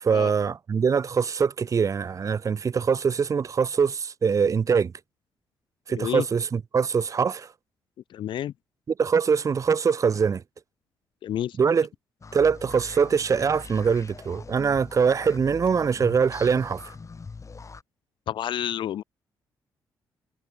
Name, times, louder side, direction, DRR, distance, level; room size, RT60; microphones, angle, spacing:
voice 1, 0.0-4.9 5.9-7.5 9.0-10.4 11.6-11.9 12.3-16.8, right 6 dB, 40° right, 0.5 m, -23 dB
voice 2, 5.9-6.2 8.1-8.5 11.2-11.6 18.3-19.0, left 11 dB, 75° left, 2.5 m, -29 dB
sound 1, 12.2-17.8, left 4 dB, 40° left, 4.4 m, -42 dB
supercardioid pair, 60°, 8 cm